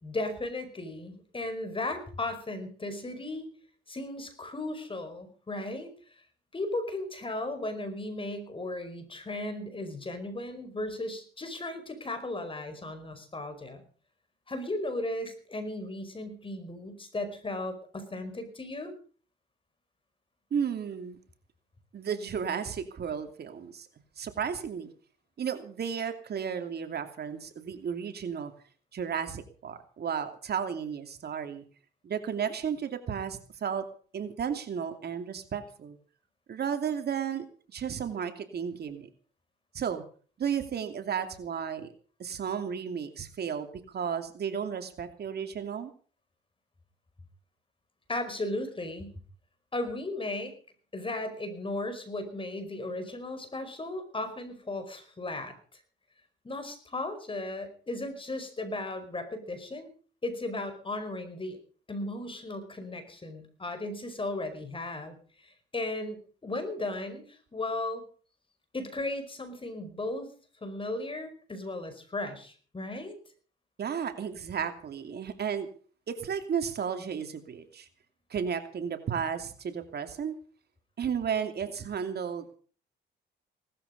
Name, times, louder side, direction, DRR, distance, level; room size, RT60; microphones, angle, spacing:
voice 1, 0.0-3.5 3.9-5.9 6.5-13.8 14.5-18.9 48.1-49.1 49.7-50.5 50.9-55.8 56.4-59.9 60.2-61.6 61.9-68.0 68.7-70.3 70.6-73.2, left 2 dB, 25° left, 9 dB, 5.3 m, -36 dB
voice 2, 20.5-21.2 21.9-23.9 24.2-24.9 25.4-28.5 28.9-31.6 32.0-33.8 34.1-36.0 36.5-39.1 39.7-40.0 40.4-41.9 42.2-45.9 73.8-75.7 76.1-77.9 78.3-80.3 81.0-82.5, right 7 dB, 55° right, 7 dB, 2.8 m, -33 dB
18.5 x 13.5 x 5.4 m, 0.42 s
cardioid pair, 90°, 20 cm